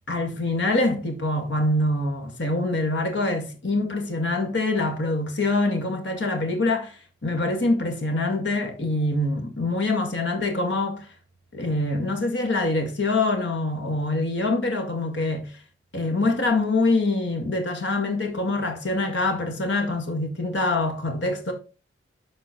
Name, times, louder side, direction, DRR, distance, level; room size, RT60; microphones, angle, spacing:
voice 1, 0.1-11.1 11.5-15.5 15.9-21.5, left 2 dB, 75° left, 1.8 m, -25 dB
12.0 x 4.2 x 3.0 m
head